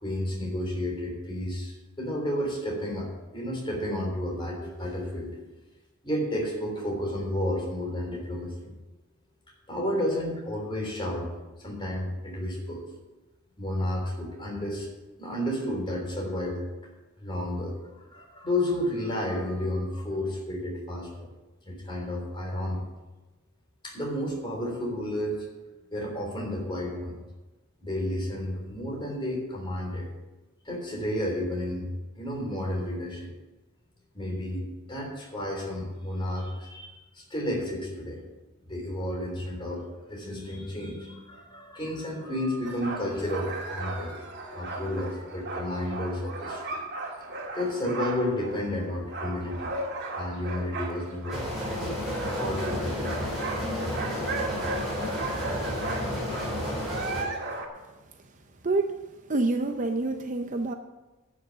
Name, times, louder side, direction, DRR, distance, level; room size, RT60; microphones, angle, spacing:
voice 1, 0.0-5.3 6.0-8.7 9.7-11.3 11.6-12.8 13.6-14.9 15.2-16.6 17.2-21.3 21.6-22.8 23.8-25.4 25.9-27.2 27.8-30.1 30.6-31.9 32.2-33.3 34.1-38.2 38.6-44.1 44.5-46.8 47.5-49.7 50.1-51.4 51.8-52.0 52.3-53.3, left 1 dB, 20° left, -1 dB, 3.4 m, -31 dB
sound 1, 42.6-51.8 52.1-57.7, right 2 dB, 50° right, 2.2 m, -36 dB
sound 2, 51.3-57.2, left 1 dB, ahead, 4.6 m, -31 dB
voice 2, 58.6-59.0 59.3-60.7, right 2 dB, 35° right, 7 dB, 0.6 m, -27 dB
11.0 x 6.3 x 8.9 m, 1.1 s
head